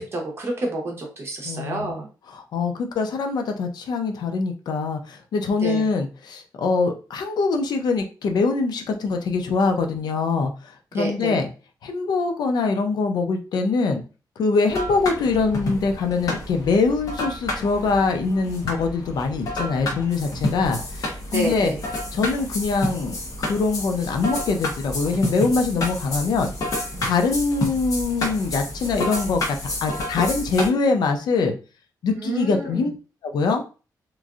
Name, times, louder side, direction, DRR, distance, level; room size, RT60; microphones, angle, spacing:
voice 1, 0.0-2.1 5.6-5.8 10.9-11.4 21.3-21.8 26.9-27.1 32.1-32.9, right 1 dB, 35° right, 0 dB, 0.9 m, -28 dB
voice 2, 1.4-2.0 2.3-11.5 11.8-14.0 14.4-21.7 22.1-26.5 27.0-31.6 32.0-32.9 33.2-33.6, left 4 dB, 75° left, 5 dB, 0.5 m, -23 dB
sound 1, 14.7-30.7, left 1 dB, 55° left, 1.0 m, -30 dB
3.0 x 2.5 x 2.4 m, 0.34 s
wide cardioid pair, 170°, 7 cm